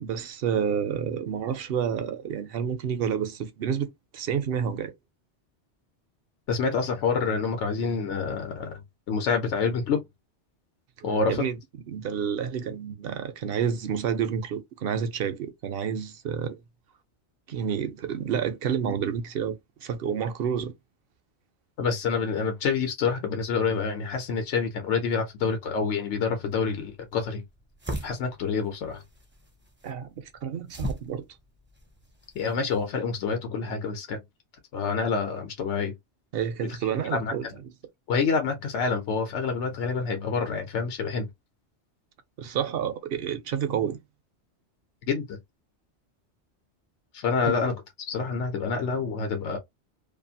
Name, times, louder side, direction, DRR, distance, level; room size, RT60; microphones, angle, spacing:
voice 1, 0.0-4.9 11.0-11.6 11.9-16.6 17.5-19.5 19.8-20.7 29.8-31.2 36.3-37.5 42.4-44.0 47.5-47.6, right 8 dB, 65° right, 0.8 m, -29 dB
voice 2, 6.5-8.8 9.1-10.0 11.0-11.5 21.8-27.4 28.0-29.0 32.3-34.2 34.7-35.9 36.6-36.8 37.1-37.5 38.1-41.3 45.1-45.4 47.1-47.8 48.1-49.6, left 5 dB, 90° left, 1.0 m, -27 dB
sound 1, 26.5-32.9, equal, 15° right, 0.5 m, -40 dB
2.5 x 2.4 x 2.7 m
omnidirectional pair, 1.2 m